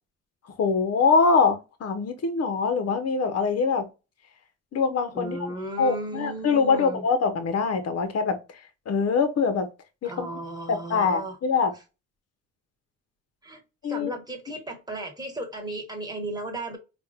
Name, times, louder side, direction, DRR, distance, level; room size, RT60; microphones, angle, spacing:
voice 1, 0.6-3.9 4.7-5.4 5.8-8.4 8.9-9.7 10.0-10.3 10.7-11.7 13.8-14.1, left 5 dB, 55° left, 1.0 m, -23 dB
voice 2, 5.1-7.0 10.0-11.4 13.4-13.6 13.9-16.8, right 2 dB, 15° right, 1.5 m, -35 dB
4.3 x 2.5 x 2.4 m
cardioid pair, 90°, 30 cm